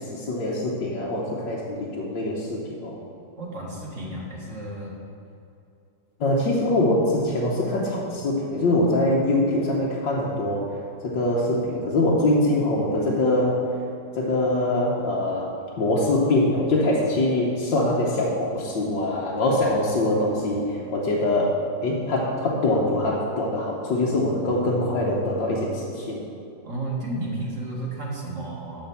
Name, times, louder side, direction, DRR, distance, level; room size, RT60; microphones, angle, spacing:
voice 1, 0.0-3.0 6.2-10.7 11.0-13.6 14.2-21.6 21.8-26.2, left 1 dB, 80° left, -5 dB, 1.8 m, -23 dB
voice 2, 3.4-5.0 26.6-28.9, right 2 dB, 45° right, -3 dB, 2.1 m, -32 dB
12.0 x 4.5 x 6.9 m, 2.7 s
omnidirectional pair, 1.9 m